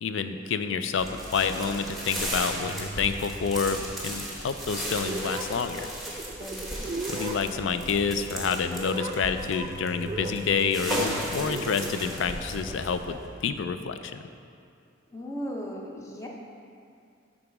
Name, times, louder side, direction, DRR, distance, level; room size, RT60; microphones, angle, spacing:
voice 1, 0.0-5.9 7.1-14.2, left 5 dB, 65° left, 9 dB, 0.4 m, -28 dB
sound 1, 1.0-13.3, equal, ahead, 1.1 m, -36 dB
sound 2, 2.3-5.5 6.7-13.6, right 1 dB, 40° left, 1.0 m, -43 dB
sound 3, 5.0-12.9, right 2 dB, 30° right, 0.3 m, -39 dB
voice 2, 6.4-6.9 15.1-16.3, equal, 15° left, -1 dB, 0.7 m, -37 dB
7.1 x 3.9 x 5.9 m, 2.4 s
head